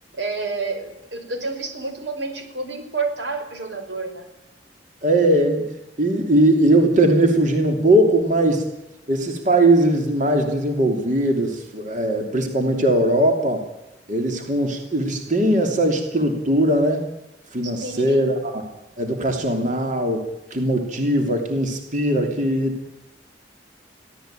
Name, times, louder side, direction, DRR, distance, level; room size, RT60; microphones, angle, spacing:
voice 1, 0.2-4.2 17.6-18.2, right 3 dB, 90° right, 6 dB, 5.1 m, -29 dB
voice 2, 5.0-5.6 6.0-8.6 9.1-13.6 14.1-17.0 17.5-18.6 19.0-20.2 20.5-22.8, right 1 dB, 45° right, 4 dB, 3.0 m, -20 dB
23.0 x 17.0 x 9.0 m, 0.93 s
head